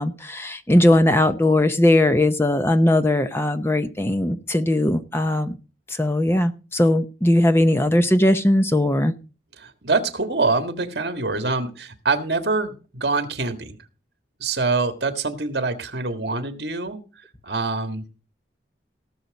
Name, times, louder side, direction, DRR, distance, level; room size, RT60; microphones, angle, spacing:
voice 1, 0.0-5.5 5.9-9.1, left 1 dB, 15° left, 10 dB, 0.6 m, -19 dB
voice 2, 9.6-13.8 14.4-17.0 17.4-18.2, right 3 dB, 65° right, 8 dB, 1.7 m, -25 dB
17.0 x 6.8 x 5.1 m, 0.35 s
head